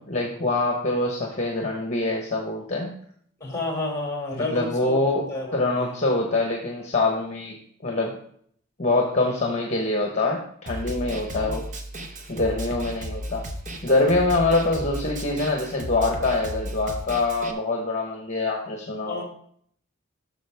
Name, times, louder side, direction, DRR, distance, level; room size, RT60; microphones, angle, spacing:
voice 1, 0.0-3.0 4.3-7.5 7.8-8.1 8.8-11.6 12.3-13.5 13.8-19.2, left 2 dB, 35° left, 1 dB, 1.2 m, -24 dB
voice 2, 3.4-5.9 11.3-11.6 19.0-19.2, left 2 dB, 15° left, 1 dB, 2.5 m, -31 dB
Snare drum, 10.7-17.5, equal, 35° right, 0.9 m, -34 dB
11.5 x 6.6 x 3.5 m, 0.63 s
head